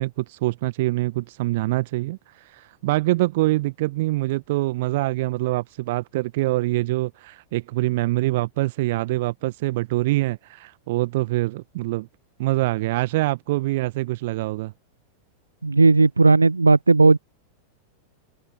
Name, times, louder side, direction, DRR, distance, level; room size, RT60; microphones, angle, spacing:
voice 1, 0.0-12.1 12.4-14.7, right 19 dB, 50° right, 1.1 m, -24 dB
voice 2, 15.6-17.2, right 3 dB, 80° right, 0.8 m, -15 dB
figure-of-eight pair, 90°, 0 cm